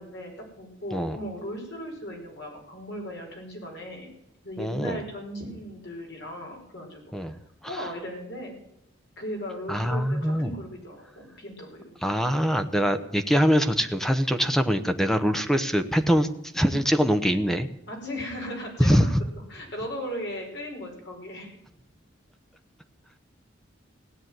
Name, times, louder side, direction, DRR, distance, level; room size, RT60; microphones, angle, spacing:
voice 1, 0.0-4.1 4.4-7.0 7.7-8.6 9.2-11.9 17.9-19.1 19.5-21.5, equal, 65° left, 1 dB, 5.4 m, -37 dB
voice 2, 4.6-5.0 7.1-7.4 7.6-7.9 9.7-10.5 12.0-16.3 16.5-17.7 18.8-19.2, equal, ahead, 8 dB, 0.9 m, -23 dB
17.0 x 8.2 x 9.3 m, 0.84 s
head